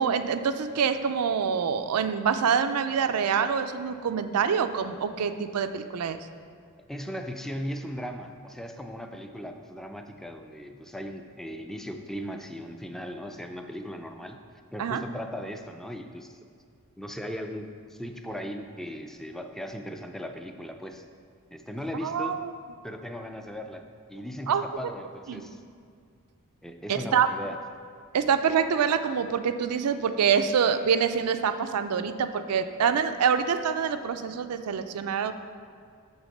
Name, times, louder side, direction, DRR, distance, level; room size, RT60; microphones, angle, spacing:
voice 1, 0.0-6.2 14.8-15.0 22.0-22.5 24.5-24.6 25.3-25.4 26.9-27.3 28.1-35.3, right 7 dB, 90° right, 10 dB, 0.4 m, -26 dB
voice 2, 6.9-14.4 14.7-16.4 17.0-21.0 21.5-22.4 22.8-25.6 26.6-27.6, equal, ahead, 5 dB, 0.4 m, -38 dB
8.1 x 3.5 x 6.5 m, 2.2 s
head